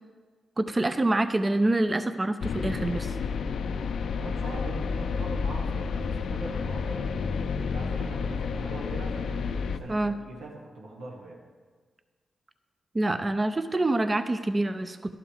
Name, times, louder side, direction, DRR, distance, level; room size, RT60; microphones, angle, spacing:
voice 1, 0.6-3.1 9.9-10.1 12.9-15.0, right 2 dB, 30° right, 10 dB, 0.6 m, -26 dB
sound 1, 2.4-9.8, left 5 dB, 75° left, 0.4 m, -30 dB
voice 2, 4.2-7.2 7.7-11.4, right 2 dB, 85° right, -3 dB, 1.3 m, -41 dB
11.5 x 5.8 x 5.0 m, 1.5 s
supercardioid pair, 45°, 0 cm